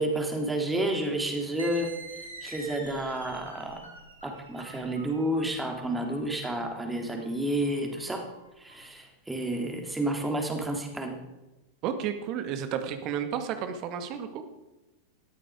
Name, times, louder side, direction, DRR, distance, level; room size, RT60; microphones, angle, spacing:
voice 1, 0.0-1.9 2.4-3.9 4.2-8.2 8.6-11.2, right 1 dB, 10° right, 3 dB, 3.5 m, -30 dB
sound 1, 1.6-8.8, right 3 dB, 80° right, 4.0 m, -46 dB
voice 2, 11.8-14.4, right 8 dB, 40° right, 9 dB, 2.0 m, -32 dB
19.0 x 13.5 x 5.1 m, 1.0 s
figure-of-eight pair, 90°, 0 cm